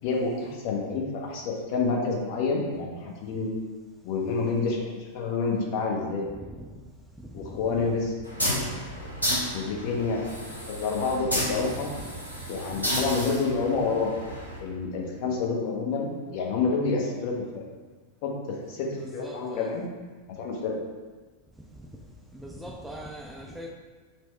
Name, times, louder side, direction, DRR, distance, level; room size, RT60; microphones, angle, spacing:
voice 1, 0.0-3.5 4.0-6.3 7.3-8.1 8.4-9.1 9.5-10.2 10.7-11.9 12.5-14.1 14.6-17.6 18.2-19.8 20.4-20.7, left 4 dB, 45° left, -1 dB, 0.7 m, -28 dB
voice 2, 6.4-6.7 7.2-7.9 11.6-12.1 12.8-12.9 19.0-19.7 21.8-21.9 22.3-23.7, right 1 dB, 5° right, -1 dB, 0.4 m, -42 dB
sound 1, 8.2-14.6, equal, 80° left, 0.9 m, -32 dB
4.4 x 2.1 x 4.3 m, 1.4 s
figure-of-eight pair, 90°, 0 cm